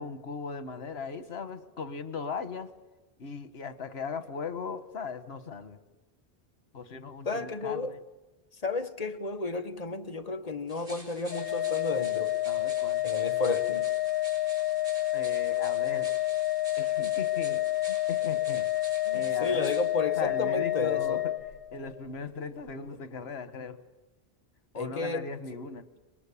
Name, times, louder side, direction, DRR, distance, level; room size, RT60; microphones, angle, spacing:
voice 1, 0.0-2.7 3.2-5.8 6.7-8.0 12.5-13.0 15.1-16.2 16.8-18.7 19.1-19.7 20.2-21.3 21.7-23.8 24.7-25.9, left 5 dB, 90° left, 1.5 m, -38 dB
voice 2, 7.2-7.9 8.5-12.3 13.0-13.9 19.1-21.2 24.7-25.3, left 3 dB, 40° left, 1.3 m, -32 dB
sound 1, 10.7-19.8, right 1 dB, 40° right, 6.2 m, -49 dB
Organ, 11.3-22.0, left 14 dB, 65° left, 1.2 m, -29 dB
24.5 x 20.5 x 8.5 m
omnidirectional pair, 1.0 m